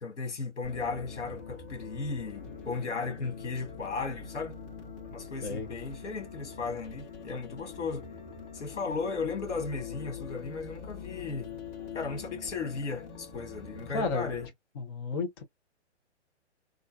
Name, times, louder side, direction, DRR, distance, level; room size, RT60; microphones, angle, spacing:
voice 1, 0.0-4.6 5.1-8.1 8.5-11.6 11.9-14.5, left 4 dB, 80° left, 1.9 m, -36 dB
sound 1, 0.6-14.5, left 6 dB, 45° left, 2.0 m, -44 dB
voice 2, 13.9-14.3 14.8-15.4, left 4 dB, 20° left, 0.5 m, -32 dB
3.6 x 2.2 x 2.3 m
hypercardioid pair, 150°, 35 cm